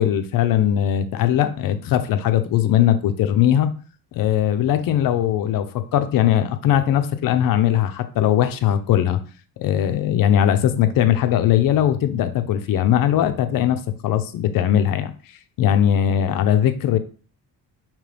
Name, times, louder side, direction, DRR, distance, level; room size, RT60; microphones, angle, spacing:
voice 1, 0.0-3.7 4.1-9.2 9.6-15.1 15.6-17.0, left 10 dB, 60° left, 10 dB, 0.6 m, -19 dB
5.2 x 2.9 x 3.3 m, 0.39 s
cardioid pair, 155°, 38 cm